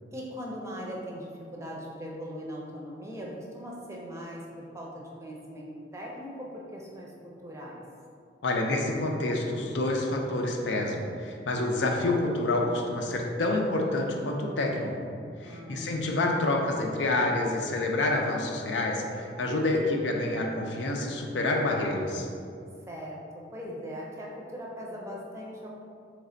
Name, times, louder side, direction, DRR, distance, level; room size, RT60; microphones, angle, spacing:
voice 1, 0.1-7.1 7.4-7.8 15.4-16.0 22.9-25.7, equal, 15° right, -3 dB, 0.5 m, -40 dB
voice 2, 8.4-14.9 15.4-22.3, left 2 dB, 85° left, 1 dB, 0.5 m, -28 dB
3.3 x 3.2 x 3.8 m, 2.3 s
head